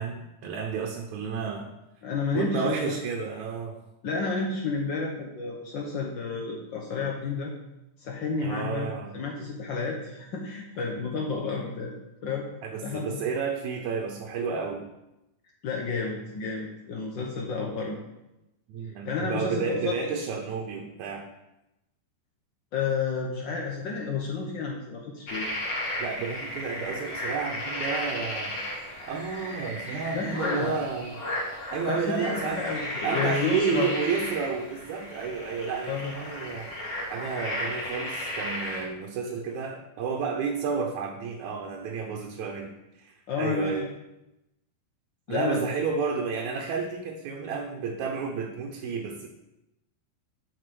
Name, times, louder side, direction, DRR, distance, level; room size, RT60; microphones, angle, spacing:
voice 1, 0.0-1.7 2.3-3.8 8.4-9.2 12.6-14.9 18.7-21.3 26.0-28.6 29.0-31.2 31.7-32.6 33.0-36.7 37.1-43.9 45.3-49.3, right 5 dB, 75° right, 2 dB, 2.1 m, -31 dB
voice 2, 2.0-3.0 4.0-7.5 8.0-11.9 12.2-12.4 12.8-13.1 15.6-18.0 19.0-19.9 22.7-25.5 30.1-30.8 31.9-33.9 35.9-36.1 43.3-43.9 45.3-45.6, left 4 dB, 80° left, -1 dB, 1.0 m, -31 dB
sound 1, 25.3-38.8, left 1 dB, 45° left, 2.9 m, -34 dB
7.7 x 5.5 x 6.8 m, 0.93 s
omnidirectional pair, 3.5 m